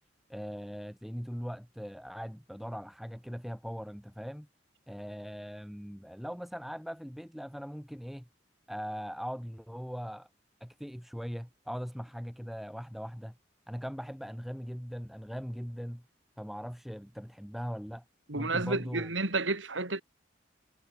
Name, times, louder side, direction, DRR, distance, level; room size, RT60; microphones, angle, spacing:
voice 1, 0.3-4.5 4.9-8.3 8.7-10.3 10.6-13.3 13.7-16.1 16.4-18.0 18.3-19.1, equal, ahead, 5.4 m, -40 dB
voice 2, 18.3-20.0, right 3 dB, 90° right, 3.8 m, -31 dB
head